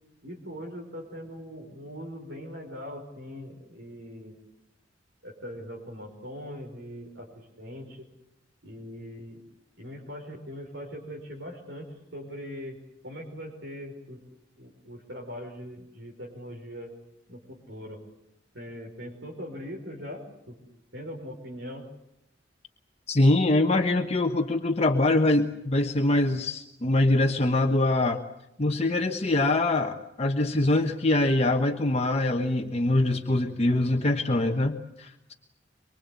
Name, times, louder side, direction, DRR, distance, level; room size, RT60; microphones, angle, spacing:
voice 1, 0.2-4.4 5.2-8.1 8.6-9.4 9.8-12.8 13.0-14.2 14.6-16.9 17.3-18.0 18.5-20.6 20.9-21.8, equal, 80° right, 1 dB, 4.9 m, -41 dB
voice 2, 23.1-28.2 28.6-35.3, left 2 dB, 35° left, 4 dB, 1.2 m, -24 dB
24.5 x 24.0 x 8.3 m, 0.83 s
head